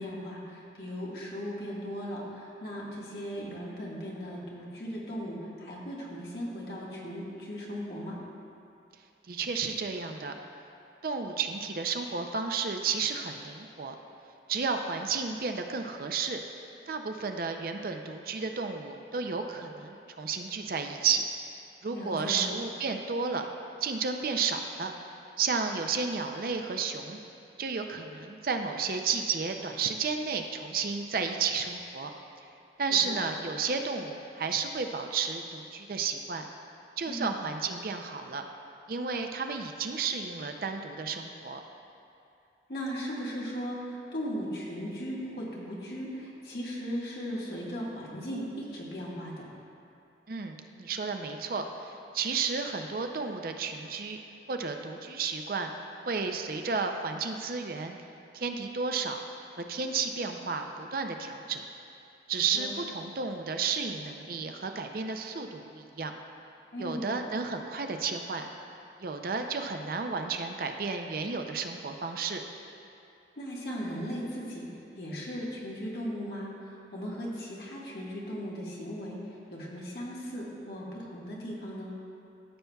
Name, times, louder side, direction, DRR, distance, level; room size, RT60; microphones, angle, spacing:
voice 1, 0.0-8.2 21.9-22.5 33.1-33.2 37.1-37.4 42.7-49.5 62.5-62.7 66.7-67.1 73.4-81.9, equal, 60° left, -4 dB, 1.5 m, -37 dB
voice 2, 9.3-10.3 11.0-13.9 14.5-16.4 16.9-21.3 21.8-23.5 23.8-24.9 25.4-27.2 27.6-32.1 32.8-36.4 37.0-38.4 38.9-41.6 50.3-54.2 54.5-55.7 56.1-58.0 58.3-59.2 59.6-61.6 62.3-66.1 66.8-68.5 69.0-72.4, right 5 dB, 55° right, 5 dB, 0.5 m, -32 dB
14.5 x 6.6 x 2.3 m, 2.7 s
head